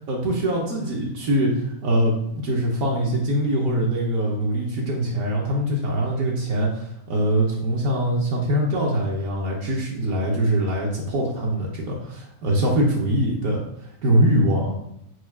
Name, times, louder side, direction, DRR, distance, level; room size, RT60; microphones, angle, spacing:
voice 1, 0.1-13.6 14.0-14.7, right 1 dB, 70° right, -3 dB, 1.3 m, -23 dB
4.7 x 2.3 x 4.7 m, 0.76 s
omnidirectional pair, 1.5 m